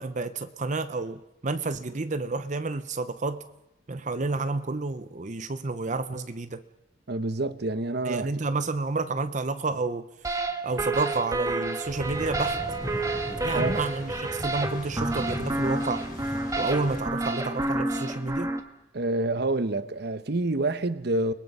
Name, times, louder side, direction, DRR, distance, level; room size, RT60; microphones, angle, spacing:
voice 1, 0.0-3.4 3.9-6.6 8.1-10.1 10.6-12.6 13.4-16.0 16.6-18.5, right 3 dB, 40° right, 0.8 m, -30 dB
voice 2, 7.1-8.3 13.5-13.8 18.9-21.3, right 2 dB, 60° right, 1.0 m, -27 dB
sound 1, 10.2-18.6, right 2 dB, 20° right, 1.5 m, -30 dB
sound 2, 11.8-17.0, equal, 50° left, 5.2 m, -37 dB
29.5 x 21.0 x 5.5 m
head